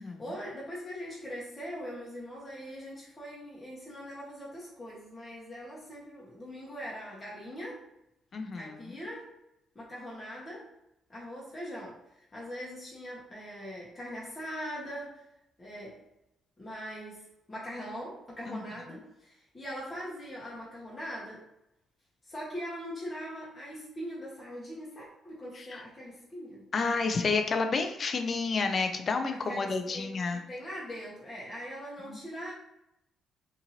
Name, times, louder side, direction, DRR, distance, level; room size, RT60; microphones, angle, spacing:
voice 1, 0.0-7.8 8.6-9.3 9.7-10.7 11.1-12.0 12.3-15.2 15.6-16.0 16.6-17.2 17.5-21.4 22.2-26.6 29.5-32.5, equal, 25° left, -6 dB, 0.8 m, -41 dB
voice 2, 8.3-9.0 18.5-18.6 25.5-25.8 26.7-30.4 32.0-32.2, left 4 dB, 45° left, 6 dB, 0.4 m, -30 dB
2.7 x 2.5 x 2.9 m, 0.85 s
cardioid pair, 90°, 0 cm